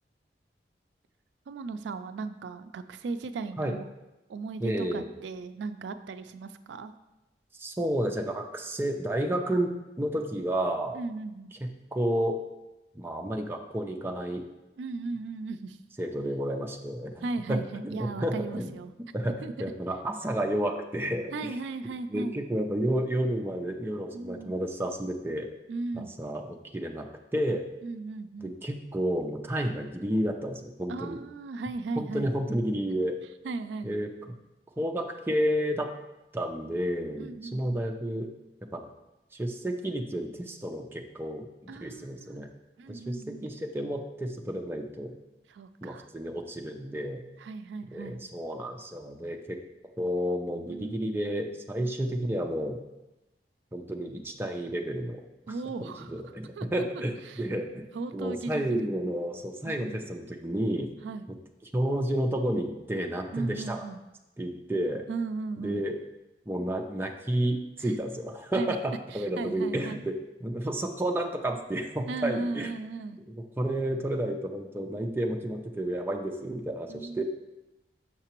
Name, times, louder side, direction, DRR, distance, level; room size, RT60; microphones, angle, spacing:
voice 1, 1.5-3.9 4.3-6.9 10.9-11.5 14.8-15.8 17.2-18.9 19.4-19.5 21.3-22.4 24.1-24.6 25.7-26.1 27.8-28.5 30.9-32.3 33.4-34.0 37.2-37.8 41.7-42.4 42.8-43.5 45.5-46.1 47.4-48.2 50.7-51.2 51.8-51.9 55.5-56.1 56.6-56.7 57.3-57.5 57.9-58.9 59.6-60.0 61.0-61.3 63.3-64.0 65.1-65.8 67.8-68.0 68.5-68.8 69.1-70.1 72.1-73.2 76.9-77.2, right 3 dB, 85° right, 11 dB, 0.3 m, -36 dB
voice 2, 4.6-5.1 7.5-11.0 11.6-12.4 13.0-14.4 16.0-18.7 19.1-21.6 22.1-25.5 25.9-27.7 28.4-31.2 32.0-33.2 33.8-34.1 34.8-35.9 36.3-38.3 38.6-38.9 39.3-42.5 42.9-45.1 45.8-47.2 47.9-49.6 50.0-52.8 53.7-55.2 55.8-60.9 61.7-63.8 64.4-65.0 65.6-66.0 66.5-70.1 70.4-72.7 73.6-77.2, right 1 dB, 15° right, 3 dB, 0.5 m, -31 dB
6.6 x 5.8 x 2.9 m, 0.98 s
head